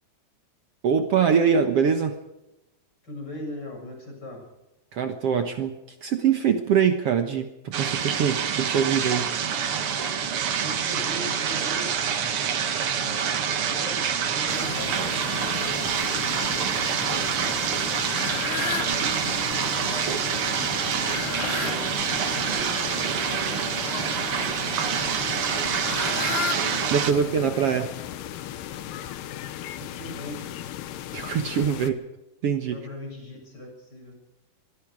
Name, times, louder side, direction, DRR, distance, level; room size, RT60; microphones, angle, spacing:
voice 1, 0.8-2.2 4.9-9.3 26.9-27.9 31.1-32.0 32.4-32.8, right 7 dB, 90° right, 7 dB, 1.3 m, -23 dB
voice 2, 3.0-4.5 10.6-12.2 13.0-15.9 18.0-20.7 21.4-24.6 25.5-26.5 27.0-27.5 29.8-30.5 31.7-31.8 32.7-34.1, left 1 dB, 25° left, 1 dB, 7.6 m, -40 dB
sound 1, 7.7-27.1, right 7 dB, 55° right, 1.5 m, -26 dB
Fowl, 14.1-29.5, left 7 dB, 55° left, 2.4 m, -39 dB
sound 2, 14.5-31.9, left 12 dB, 75° left, 3.2 m, -37 dB
24.0 x 23.0 x 5.0 m, 0.91 s
omnidirectional pair, 4.8 m